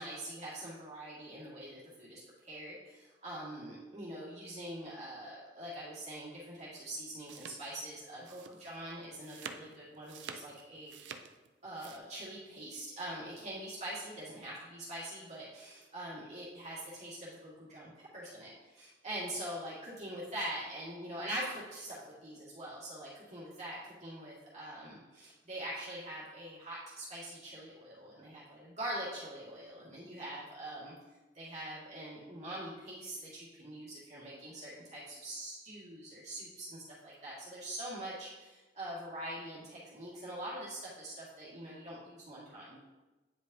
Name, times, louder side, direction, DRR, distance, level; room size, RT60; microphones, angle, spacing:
voice 1, 0.0-11.0 11.6-30.9 31.3-42.8, right 1 dB, 40° right, -8 dB, 1.9 m, -43 dB
sound 1, 6.8-12.0, right 6 dB, 90° right, 0.5 m, -49 dB
9.0 x 5.2 x 2.7 m, 1.2 s
head